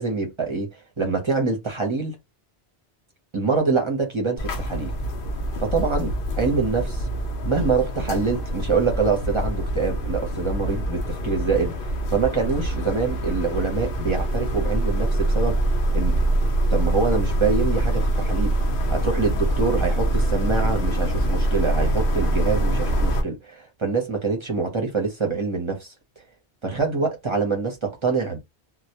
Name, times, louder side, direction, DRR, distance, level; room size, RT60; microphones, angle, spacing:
voice 1, 0.0-2.2 3.3-4.9 5.6-7.1 7.4-16.2 16.7-18.5 18.9-25.9 26.6-28.4, right 4 dB, 35° right, 0.6 m, -25 dB
sound 1, 4.4-23.2, right 1 dB, 60° left, 0.7 m, -24 dB
2.1 x 2.1 x 2.7 m
omnidirectional pair, 1.1 m